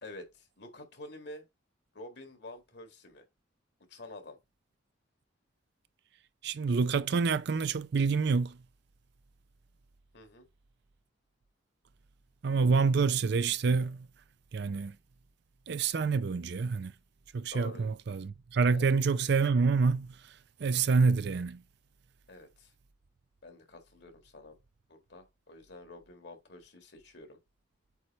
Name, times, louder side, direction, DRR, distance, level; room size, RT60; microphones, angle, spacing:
voice 1, 0.0-1.4 1.9-3.3 3.9-4.4 10.1-10.5 17.5-17.9 18.7-18.9 22.3-22.7 23.4-24.6 24.9-27.4, left 2 dB, 60° left, 1.8 m, -48 dB
voice 2, 6.4-8.6 12.4-14.1 14.5-15.0 15.7-16.9 17.3-20.1 20.6-21.6, right 4 dB, 60° right, 0.4 m, -27 dB
8.2 x 3.2 x 4.2 m
head